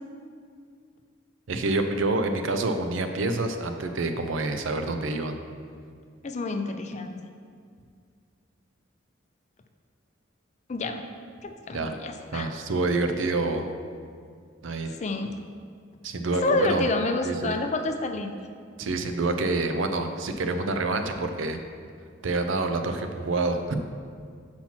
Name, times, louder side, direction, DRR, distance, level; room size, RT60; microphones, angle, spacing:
voice 1, 1.5-5.4 11.7-11.9 12.3-13.7 14.6-14.9 16.0-16.9 17.2-17.6 18.8-21.6 22.2-23.8, right 2 dB, 85° right, 7 dB, 0.6 m, -27 dB
voice 2, 6.2-7.2 10.7-11.0 11.4-12.5 15.0-15.3 16.4-18.3, left 2 dB, 35° left, 6 dB, 0.4 m, -28 dB
5.8 x 4.4 x 5.8 m, 2.1 s
head